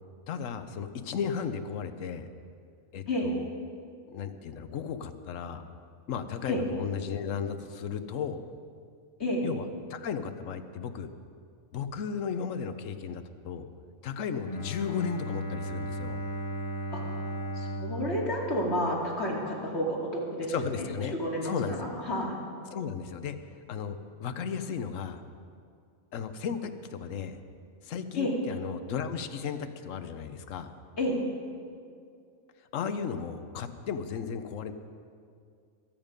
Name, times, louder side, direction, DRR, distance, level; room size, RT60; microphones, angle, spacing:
voice 1, 0.3-2.3 2.9-3.5 4.1-5.6 6.1-8.4 9.4-9.6 9.9-11.1 11.7-13.7 14.0-16.2 20.5-21.1 21.4-21.9 22.7-23.4 23.7-25.2 26.1-27.4 27.8-30.7 32.7-34.7, left 7 dB, 70° left, 9 dB, 1.2 m, -35 dB
Bowed string instrument, 14.4-19.4, right 1 dB, 25° left, 1.4 m, -36 dB
voice 2, 17.6-20.5 21.1-22.4 28.1-28.4 31.0-31.2, equal, 50° left, -3 dB, 2.8 m, -30 dB
22.5 x 9.0 x 5.2 m, 2.3 s
omnidirectional pair, 1.4 m